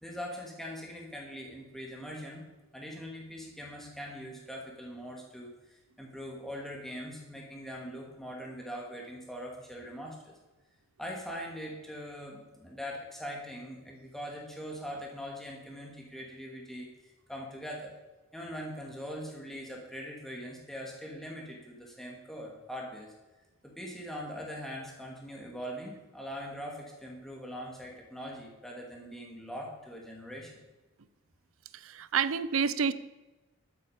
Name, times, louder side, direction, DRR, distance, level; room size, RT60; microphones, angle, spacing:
voice 1, 0.0-2.4 2.7-10.3 11.0-17.9 18.3-23.1 23.6-30.5, equal, ahead, -2 dB, 2.3 m, -42 dB
voice 2, 31.7-32.9, right 6 dB, 75° right, 15 dB, 0.6 m, -29 dB
12.5 x 8.5 x 5.1 m, 1.1 s
head